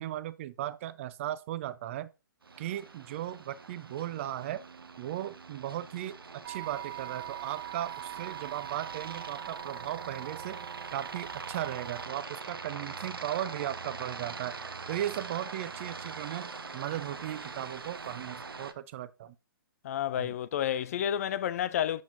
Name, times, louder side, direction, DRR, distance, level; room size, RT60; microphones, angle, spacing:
voice 1, 0.0-2.1 2.6-4.6 5.0-10.7 10.9-14.5 14.9-19.4 20.2-20.3, right 12 dB, 35° right, 0.4 m, -37 dB
Aircraft, 2.4-18.7, right 4 dB, 85° right, 0.8 m, -43 dB
sound 1, 6.4-12.1, right 16 dB, 15° right, 1.5 m, -43 dB
voice 2, 19.8-22.0, left 10 dB, 40° left, 0.3 m, -30 dB
7.1 x 6.3 x 2.6 m
figure-of-eight pair, 135°, 12 cm